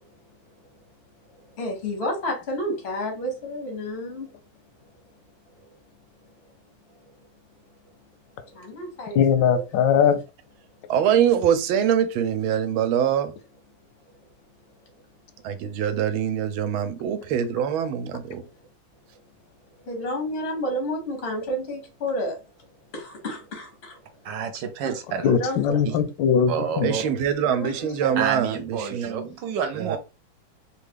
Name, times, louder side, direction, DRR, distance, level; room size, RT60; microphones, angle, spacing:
voice 1, 1.3-4.3 5.6-5.7 8.4-9.6 19.8-22.4 22.9-24.0 25.2-25.8 27.4-28.2, equal, 50° left, 0.7 m, -31 dB
voice 2, 9.1-10.2 25.2-27.0, left 8 dB, 75° left, 1.1 m, -20 dB
voice 3, 10.9-13.3 15.4-18.5 24.9-25.0 26.8-29.3 29.7-30.0, right 9 dB, 90° right, 1.4 m, -24 dB
voice 4, 24.2-25.4 25.8-25.9 26.5-27.0 28.2-30.0, right 7 dB, 70° right, 1.3 m, -29 dB
3.4 x 2.3 x 3.2 m
omnidirectional pair, 2.2 m